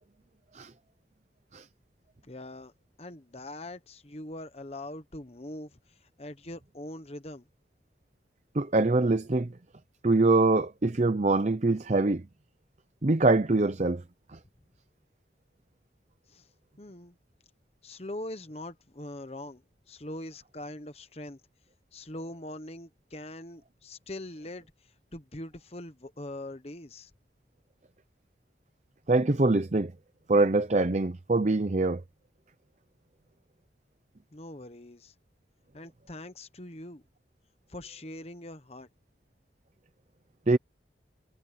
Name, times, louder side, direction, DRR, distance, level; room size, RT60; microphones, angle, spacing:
voice 1, 2.3-2.7 3.0-5.8 6.2-7.4 16.3-16.5 16.8-17.1 17.8-19.6 19.9-21.4 21.9-24.7 25.1-27.1 34.3-35.1 35.7-37.0 37.7-38.9, left 1 dB, 35° left, 1.2 m, -42 dB
voice 2, 8.5-9.5 10.0-12.2 13.0-14.0 29.1-29.9 30.3-32.0 40.5-40.6, right 2 dB, 40° right, 0.7 m, -24 dB
head